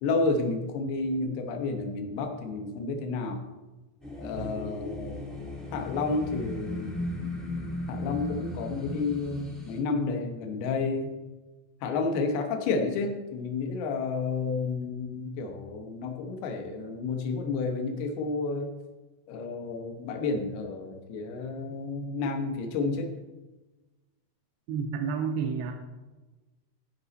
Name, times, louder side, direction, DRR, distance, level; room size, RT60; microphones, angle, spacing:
voice 1, 0.0-3.4 4.2-5.2 5.7-7.0 7.9-11.1 11.8-18.7 19.3-23.1, left 3 dB, 75° left, 4 dB, 3.0 m, -31 dB
sound 1, 4.0-9.8, left 2 dB, ahead, 0.5 m, -36 dB
voice 2, 24.7-25.7, right 6 dB, 80° right, 4 dB, 2.7 m, -30 dB
13.5 x 5.4 x 4.1 m, 1.1 s
omnidirectional pair, 4.7 m